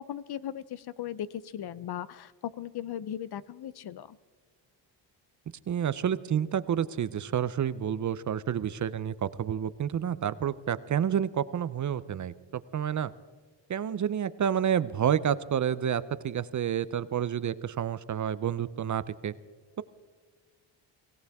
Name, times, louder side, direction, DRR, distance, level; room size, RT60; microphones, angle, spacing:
voice 1, 0.0-4.2, left 10 dB, 55° left, 18 dB, 0.7 m, -38 dB
voice 2, 5.7-13.1 13.7-19.3, right 9 dB, 40° right, 16 dB, 0.6 m, -29 dB
24.0 x 17.0 x 3.5 m, 1.5 s
cardioid pair, 115°, 46 cm